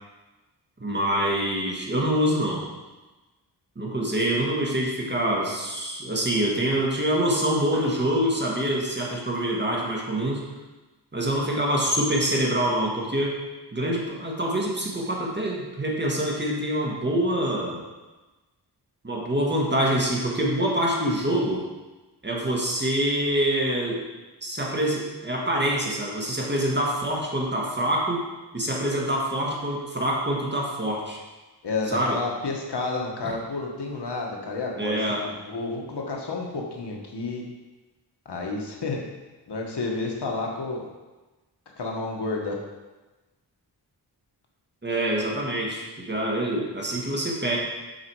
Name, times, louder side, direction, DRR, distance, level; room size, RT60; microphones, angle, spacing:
voice 1, 0.8-2.6 3.7-10.4 11.1-13.4 13.7-17.8 19.0-21.6 22.2-24.0 24.4-28.3 28.5-31.2 31.9-32.2 33.2-33.3 34.8-35.2 44.8-47.6, right 1 dB, 25° right, -2 dB, 1.6 m, -25 dB
voice 2, 31.6-37.4 38.2-39.0 39.5-40.9 41.8-42.6, left 3 dB, 70° left, 0 dB, 1.4 m, -30 dB
7.1 x 6.4 x 4.7 m, 1.2 s
wide cardioid pair, 100°, 42 cm